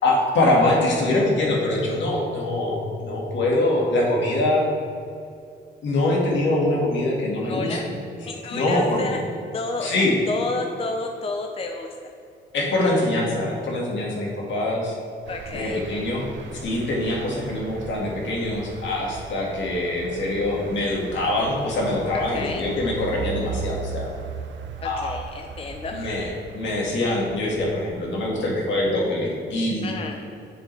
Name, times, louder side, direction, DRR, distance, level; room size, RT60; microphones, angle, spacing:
voice 1, 0.0-4.7 5.8-8.0 8.5-9.0 9.8-10.2 12.5-14.9 15.5-16.3 16.6-24.1 24.8-25.1 25.9-29.9, left 1 dB, 70° left, -2 dB, 1.8 m, -24 dB
voice 2, 7.3-7.8 8.2-9.2 9.5-12.0 15.3-15.8 22.1-22.7 24.8-26.3 29.8-30.2, left 3 dB, 30° left, 3 dB, 0.6 m, -31 dB
sound 1, 15.3-29.7, right 6 dB, 70° right, 0.5 m, -38 dB
7.4 x 6.8 x 3.3 m, 2.5 s
cardioid pair, 90°, 20 cm